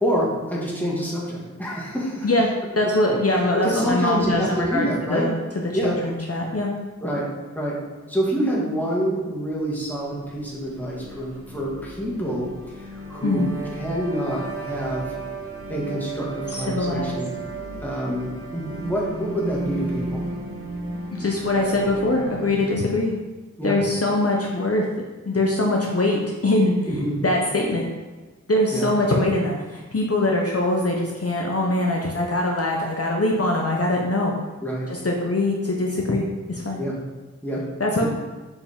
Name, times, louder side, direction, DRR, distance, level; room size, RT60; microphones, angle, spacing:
voice 1, 0.0-2.3 3.4-5.3 5.7-6.0 7.0-7.3 7.6-7.8 8.1-13.5 13.8-15.1 15.7-17.3 17.6-20.2 23.6-23.8 26.8-27.2 28.7-28.9 34.6-34.9 36.8-37.0 37.4-37.7 38.0-38.1, equal, 5° left, -5 dB, 1.9 m, -27 dB
voice 2, 2.8-5.3 5.7-6.7 13.2-13.5 16.5-17.2 21.2-23.1 23.6-24.8 25.3-26.9 27.2-27.9 28.5-34.3 34.9-36.8 37.8-38.1, left 1 dB, 50° left, -1 dB, 0.8 m, -22 dB
sound 1, 10.0-23.0, right 2 dB, 45° right, 1.2 m, -34 dB
6.8 x 4.8 x 3.6 m, 1.2 s
wide cardioid pair, 65°, 32 cm